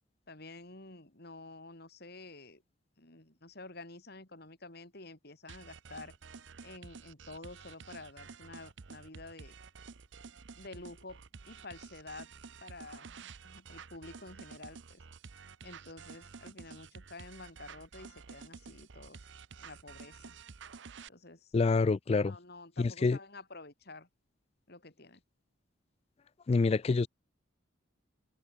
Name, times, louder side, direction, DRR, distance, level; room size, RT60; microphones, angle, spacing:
voice 1, 0.3-2.6 3.0-6.2 6.6-9.5 10.6-12.3 12.6-15.0 15.6-19.3 19.6-20.3 21.1-21.5 22.3-24.1 24.7-25.2, left 2 dB, 50° left, 3.7 m, -50 dB
sound 1, 5.5-21.1, right 5 dB, 60° right, 0.7 m, -50 dB
voice 2, 21.5-22.3 22.8-23.2 26.5-27.1, left 4 dB, 30° left, 0.3 m, -27 dB
head